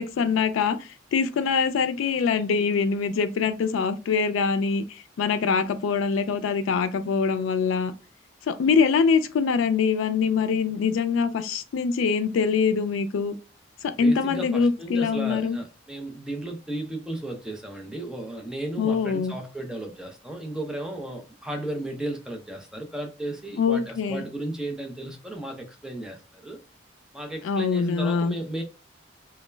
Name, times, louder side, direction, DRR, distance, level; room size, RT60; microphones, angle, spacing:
voice 1, 0.0-7.9 8.5-13.3 13.8-15.6 18.8-19.3 23.6-24.2 27.4-28.4, left 5 dB, 90° left, 0.3 m, -24 dB
voice 2, 13.9-26.6 27.1-28.6, right 1 dB, 5° right, 0.4 m, -34 dB
2.2 x 2.1 x 3.2 m
head